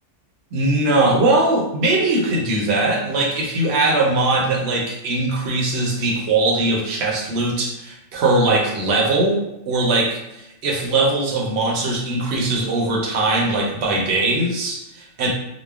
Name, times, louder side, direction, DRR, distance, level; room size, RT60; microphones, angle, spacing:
voice 1, 0.5-15.3, right 2 dB, 60° right, -2 dB, 0.9 m, -20 dB
3.1 x 2.1 x 2.3 m, 0.86 s
omnidirectional pair, 1.3 m